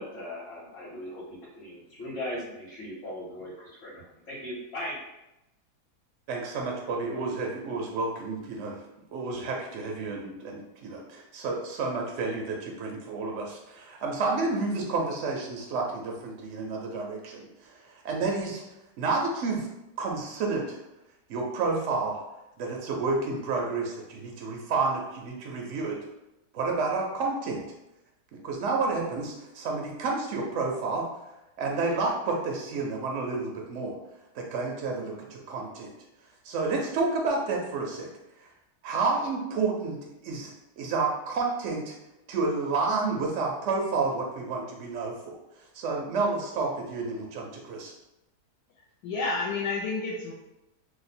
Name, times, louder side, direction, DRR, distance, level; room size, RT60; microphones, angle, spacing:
voice 1, 0.0-5.0, left 1 dB, 55° left, -7 dB, 1.1 m, -38 dB
voice 2, 6.3-8.8 9.1-18.6 19.0-19.7 20.0-20.8 21.3-22.2 22.6-26.0 26.5-27.6 28.4-31.1 31.6-34.0 34.3-35.9 36.4-38.1 38.4-38.5 38.8-41.9 42.3-45.4 45.7-47.9, right 3 dB, 70° right, 0 dB, 0.7 m, -30 dB
voice 3, 49.0-50.3, left 3 dB, 80° left, -3 dB, 1.1 m, -30 dB
2.8 x 2.1 x 4.1 m, 0.92 s
omnidirectional pair, 1.7 m